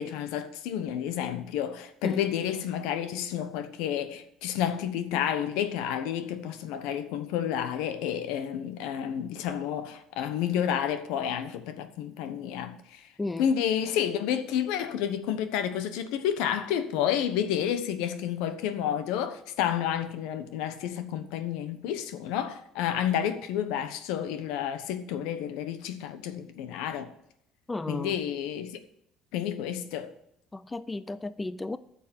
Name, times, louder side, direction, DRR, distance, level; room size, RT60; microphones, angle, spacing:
voice 1, 0.0-13.0 13.4-27.1 27.9-28.7 29.3-30.1, left 9 dB, 90° left, 1.1 m, -30 dB
voice 2, 13.2-13.5 27.7-28.1 30.5-31.8, left 2 dB, 15° left, 0.4 m, -33 dB
9.7 x 6.7 x 8.0 m
cardioid pair, 125°, 0 cm